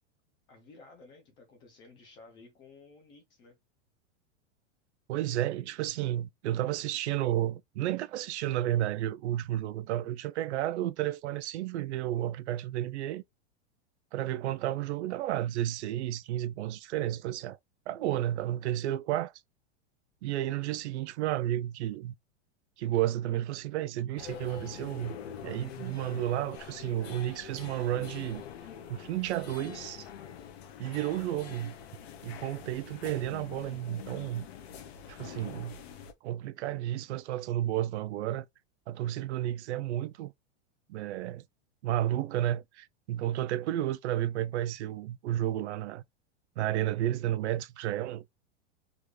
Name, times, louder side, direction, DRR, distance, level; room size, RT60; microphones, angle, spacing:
voice 1, 0.5-3.6, left 3 dB, 15° left, 0.4 m, -54 dB
voice 2, 5.1-13.2 14.1-17.6 17.9-19.3 20.2-22.1 22.8-25.2 25.4-28.4 28.9-30.1 30.8-31.7 32.2-34.5 35.1-35.8 36.2-38.5 38.9-40.3 40.9-41.4 41.8-46.0 46.6-48.2, right 13 dB, 70° right, 0.5 m, -32 dB
sound 1, 24.2-36.1, left 8 dB, 55° left, 0.8 m, -45 dB
3.5 x 2.4 x 3.2 m
supercardioid pair, 170°, 36 cm